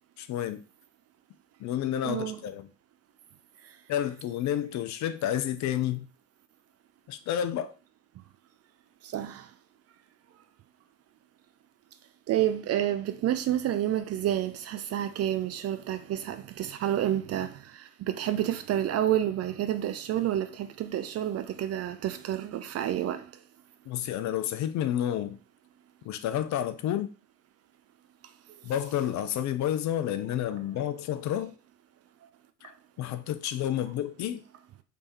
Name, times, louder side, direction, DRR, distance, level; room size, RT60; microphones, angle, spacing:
voice 1, 0.2-0.6 1.6-2.7 3.9-6.1 7.1-7.7 23.9-25.4 26.0-27.1 28.6-31.5 32.6-32.7 33.0-34.4, left 11 dB, 45° left, 0.5 m, -30 dB
voice 2, 2.0-2.4 9.0-9.5 12.3-23.3, right 11 dB, 35° right, 0.5 m, -29 dB
3.3 x 3.3 x 4.1 m
hypercardioid pair, 60°, 42 cm